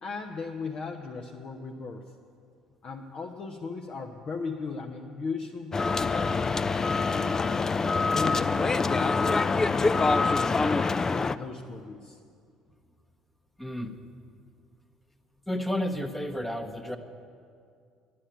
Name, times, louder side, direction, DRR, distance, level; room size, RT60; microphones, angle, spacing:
voice 1, 0.0-2.0 2.8-7.7 8.1-10.9 11.3-12.2, left 4 dB, 40° left, 1 dB, 1.0 m, -37 dB
sound 1, 5.7-11.4, left 4 dB, 25° left, 0.4 m, -25 dB
voice 2, 13.6-13.9 15.5-17.0, left 1 dB, 5° left, 6 dB, 1.2 m, -31 dB
11.5 x 10.5 x 8.8 m, 2.3 s
figure-of-eight pair, 55°, 2 cm